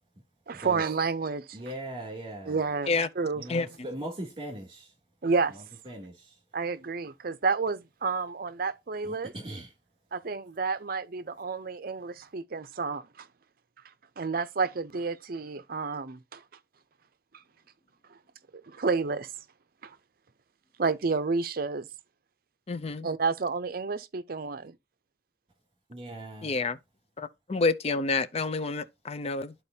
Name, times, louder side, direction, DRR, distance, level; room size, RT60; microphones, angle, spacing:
voice 1, 0.5-1.6 2.5-3.5 5.2-5.6 6.5-9.3 10.1-13.3 13.8-16.4 17.3-17.4 18.1-18.2 18.5-19.3 19.8-20.0 20.8-21.9 23.0-24.7, right 4 dB, 55° right, 0.6 m, -30 dB
voice 2, 1.5-2.6 3.3-4.9 5.5-6.4 9.0-9.7 25.9-26.6, right 1 dB, 30° right, 2.7 m, -40 dB
voice 3, 22.7-23.1 26.4-26.8 27.2-29.5, left 3 dB, 35° left, 0.5 m, -28 dB
12.5 x 4.3 x 2.7 m
head